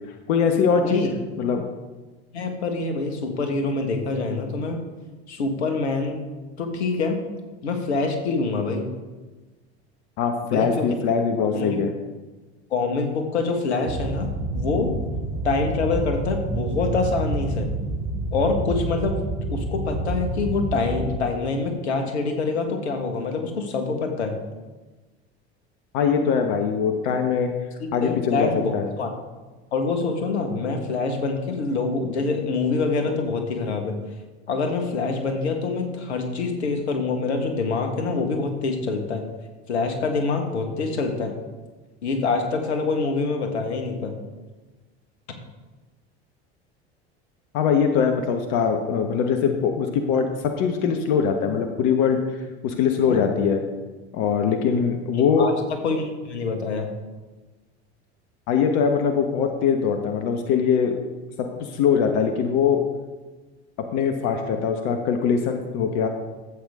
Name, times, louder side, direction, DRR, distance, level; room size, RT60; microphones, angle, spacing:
voice 1, 0.3-1.0 1.4-1.6 10.2-11.9 25.9-27.5 27.9-28.9 47.5-52.2 52.6-53.6 54.1-55.5 58.5-60.9 61.4-62.8 63.9-66.1, left 6 dB, 60° left, 5 dB, 1.2 m, -22 dB
voice 2, 2.3-4.8 5.3-6.2 6.6-7.2 7.6-8.9 10.4-11.0 11.5-11.8 12.7-14.9 15.4-17.7 18.3-19.2 19.5-24.4 27.8-29.1 29.7-34.0 34.5-39.2 39.7-41.4 42.0-44.2 53.1-53.2 55.1-56.9, left 3 dB, 80° left, 5 dB, 1.7 m, -25 dB
sound 1, 13.9-21.1, right 1 dB, 40° right, 2.5 m, -28 dB
12.5 x 8.1 x 3.7 m, 1.2 s
hypercardioid pair, 70°, 33 cm